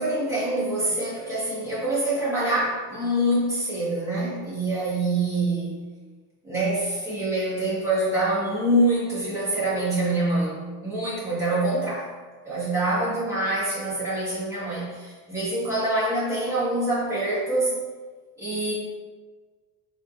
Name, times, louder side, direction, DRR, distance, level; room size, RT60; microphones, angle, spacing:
voice 1, 0.0-5.8 6.4-10.6 10.8-12.1 12.4-17.8 18.4-18.7, right 1 dB, 5° right, -9 dB, 1.5 m, -25 dB
4.7 x 4.3 x 2.5 m, 1.4 s
cardioid pair, 165°, 43 cm